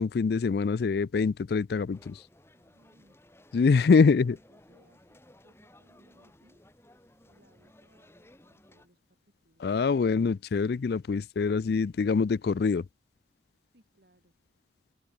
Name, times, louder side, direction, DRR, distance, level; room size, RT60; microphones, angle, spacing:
voice 1, 0.0-2.2 3.5-4.4 9.6-12.8, left 5 dB, 60° left, 0.4 m, -24 dB
sound 1, 1.9-8.9, left 1 dB, 15° left, 2.3 m, -58 dB
voice 2, 2.5-3.2 4.0-6.6 7.2-9.0 9.4-10.0 13.7-14.3, right 1 dB, 55° right, 5.0 m, -65 dB
open air
head